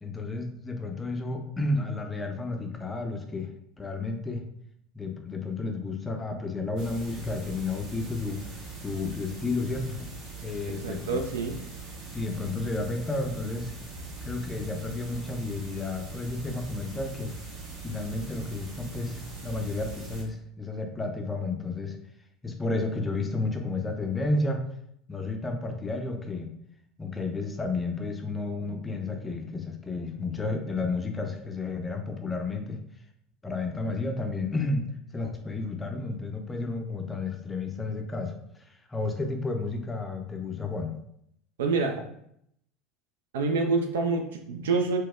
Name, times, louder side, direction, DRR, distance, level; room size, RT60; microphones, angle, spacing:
voice 1, 0.0-3.5 3.8-4.4 4.9-10.1 10.4-11.2 12.1-13.7 14.2-17.3 17.8-22.0 22.4-24.6 25.1-26.5 27.0-32.8 33.4-34.8 35.1-38.3 38.6-40.9, left 3 dB, 15° left, 3 dB, 0.4 m, -32 dB
sound 1, 6.8-20.2, right 3 dB, 50° right, 0.9 m, -41 dB
voice 2, 10.7-11.6 41.6-42.0 43.3-45.0, right 3 dB, 70° right, 5 dB, 0.3 m, -27 dB
3.9 x 2.1 x 2.2 m, 0.72 s
figure-of-eight pair, 75°, 0 cm